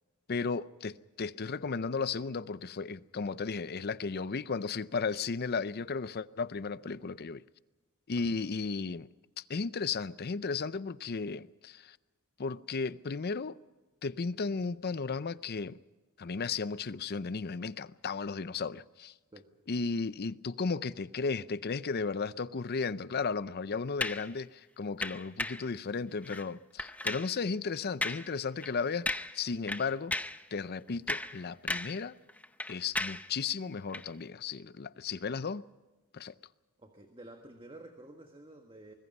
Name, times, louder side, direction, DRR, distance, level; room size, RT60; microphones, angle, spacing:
voice 1, 0.3-0.9 1.2-7.4 8.1-9.1 9.4-12.0 12.4-13.6 14.0-15.8 16.2-19.1 19.7-30.1 30.5-32.2 32.7-35.6 36.1-36.3, left 4 dB, 45° left, 0.6 m, -34 dB
sound 1, 24.0-24.3 25.0-25.7 26.2-26.5 26.8-27.3 28.0-28.3 28.6-28.7 29.1-29.4 29.7-30.4 30.9-32.0 32.3-33.3 33.9-34.1, left 2 dB, 5° left, 0.6 m, -35 dB
voice 2, 36.8-38.9, right 1 dB, 25° right, 1.6 m, -51 dB
25.0 x 21.0 x 5.4 m
head